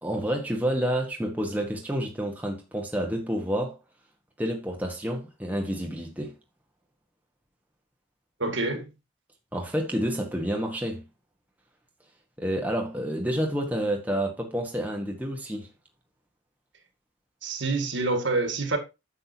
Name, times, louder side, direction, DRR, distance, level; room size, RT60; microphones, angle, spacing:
voice 1, 0.0-3.8 4.4-6.3 9.5-11.0 12.4-15.7, equal, 10° right, 1.3 m, -29 dB
voice 2, 8.4-8.9 17.4-18.8, right 3 dB, 60° right, 2.1 m, -27 dB
10.0 x 7.7 x 2.9 m
head